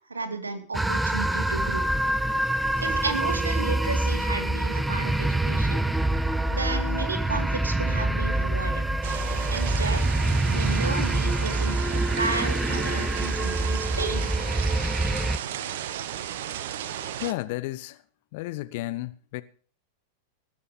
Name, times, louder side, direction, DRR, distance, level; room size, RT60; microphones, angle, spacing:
voice 1, 0.1-1.9 2.8-5.8 6.5-8.8 9.5-10.0 10.5-14.3, right 3 dB, 75° right, 2.4 m, -33 dB
sound 1, 0.7-15.4, right 1 dB, 5° right, 0.6 m, -25 dB
sound 2, 9.0-17.3, right 10 dB, 55° right, 0.9 m, -34 dB
voice 2, 17.2-18.0 18.3-19.4, left 18 dB, 50° left, 0.9 m, -32 dB
19.5 x 7.0 x 6.9 m
figure-of-eight pair, 90°, 0 cm